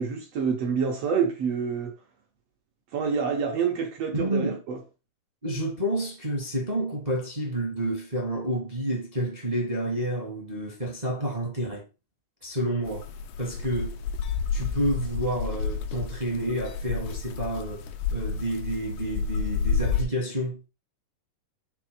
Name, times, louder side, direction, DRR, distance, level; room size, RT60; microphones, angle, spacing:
voice 1, 0.0-2.0 2.9-4.8, right 6 dB, 70° right, 1.5 m, -27 dB
voice 2, 4.1-4.6 5.4-11.8 12.4-13.1 13.4-14.0 14.5-20.6, right 1 dB, 25° right, 0.8 m, -29 dB
sound 1, 12.9-20.0, left 5 dB, 75° left, 1.8 m, -30 dB
6.0 x 3.5 x 5.0 m
omnidirectional pair, 4.0 m